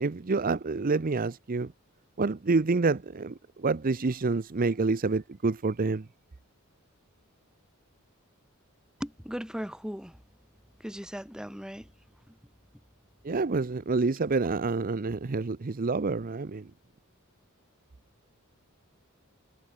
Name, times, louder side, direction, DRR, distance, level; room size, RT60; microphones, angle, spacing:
voice 1, 0.0-1.7 2.2-6.1 13.2-16.7, right 3 dB, 40° right, 0.6 m, -28 dB
voice 2, 9.0-10.2 10.8-11.9 12.3-12.4, equal, 5° right, 2.1 m, -38 dB
head